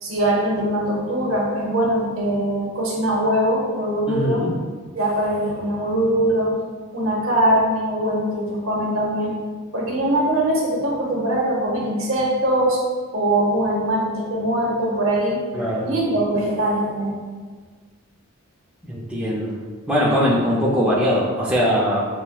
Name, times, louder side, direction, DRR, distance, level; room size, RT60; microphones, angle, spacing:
voice 1, 0.0-4.4 4.9-6.5 6.9-9.3 9.7-12.8 13.1-15.4 15.8-17.1, right 1 dB, 70° right, -3 dB, 0.9 m, -22 dB
voice 2, 4.1-4.5 15.5-15.9 18.8-19.5 19.9-22.0, equal, 5° right, -7 dB, 0.4 m, -21 dB
5.7 x 2.1 x 2.2 m, 1.5 s
head